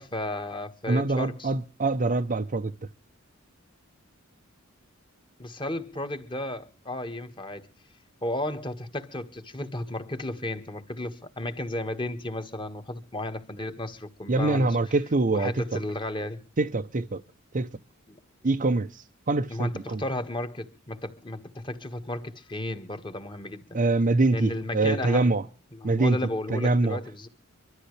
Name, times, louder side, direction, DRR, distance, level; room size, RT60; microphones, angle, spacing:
voice 1, 0.0-1.5 5.4-7.7 8.2-14.7 15.3-16.4 18.1-18.2 19.5-23.8 24.3-25.3 25.7-27.3, left 1 dB, 25° left, 1.6 m, -34 dB
voice 2, 0.9-2.7 14.3-15.8 16.6-17.2 17.5-17.7 18.4-20.0 23.7-25.5 25.8-26.2 26.5-27.0, right 2 dB, 40° right, 0.7 m, -24 dB
24.5 x 13.0 x 3.2 m
head